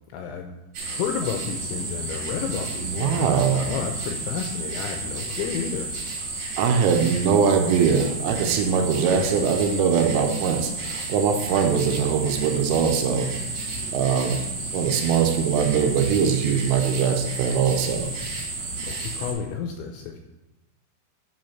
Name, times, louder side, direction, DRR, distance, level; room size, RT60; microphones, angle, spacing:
voice 1, 0.1-0.6 0.8-5.9 18.8-20.2, left 7 dB, 85° left, 4 dB, 2.7 m, -31 dB
sound 1, 0.7-19.3, right 3 dB, 45° right, 3.3 m, -32 dB
voice 2, 2.8-3.6 6.6-13.3 13.9-14.4 14.7-18.1, right 6 dB, 80° right, 5 dB, 3.3 m, -22 dB
9.4 x 5.3 x 5.8 m, 1.0 s
omnidirectional pair, 6.0 m